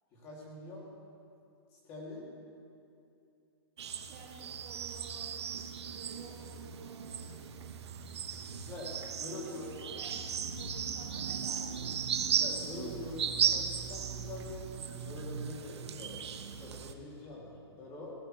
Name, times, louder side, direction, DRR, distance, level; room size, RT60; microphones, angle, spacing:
voice 1, 0.1-0.9 1.9-2.3 8.4-8.9 9.2-10.0 12.2-16.1 16.5-18.1, left 2 dB, 25° left, -4 dB, 2.7 m, -45 dB
sound 1, 3.8-16.9, right 7 dB, 90° right, 1.0 m, -36 dB
voice 2, 3.9-5.4 5.9-7.3 9.2-11.9, right 5 dB, 35° right, 1 dB, 1.1 m, -52 dB
16.5 x 15.5 x 3.3 m, 2.6 s
hypercardioid pair, 175°, 14 cm